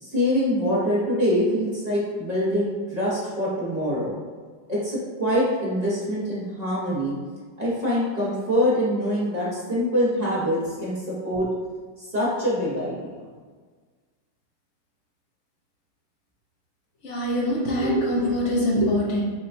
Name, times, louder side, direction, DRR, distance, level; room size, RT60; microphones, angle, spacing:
voice 1, 0.0-4.1 4.7-7.2 7.6-11.5 12.0-13.0, equal, 35° right, -9 dB, 0.7 m, -24 dB
voice 2, 17.0-19.2, equal, 60° left, -4 dB, 0.8 m, -23 dB
5.7 x 2.3 x 2.6 m, 1.5 s
omnidirectional pair, 2.0 m